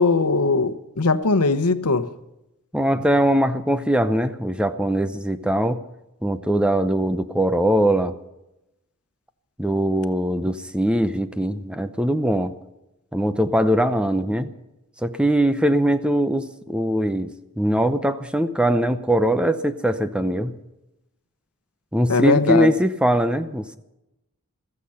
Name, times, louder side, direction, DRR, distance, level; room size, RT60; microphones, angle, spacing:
voice 1, 0.0-2.1 22.1-22.7, left 3 dB, 90° left, 12 dB, 1.0 m, -19 dB
voice 2, 2.7-5.8 6.2-8.1 9.6-12.5 13.1-14.5 15.0-20.5 21.9-23.8, right 1 dB, 5° right, 11 dB, 0.7 m, -21 dB
15.0 x 14.5 x 5.7 m, 0.92 s
head